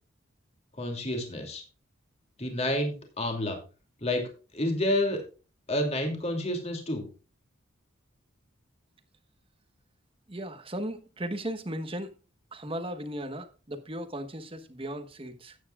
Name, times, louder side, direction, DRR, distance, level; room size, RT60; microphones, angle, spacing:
voice 1, 0.8-1.6 2.4-3.6 4.0-5.2 5.7-7.0, left 1 dB, 30° left, 2.7 m, -29 dB
voice 2, 10.3-12.1 12.5-15.6, right 1 dB, 25° right, 1.2 m, -36 dB
14.0 x 9.4 x 2.4 m
head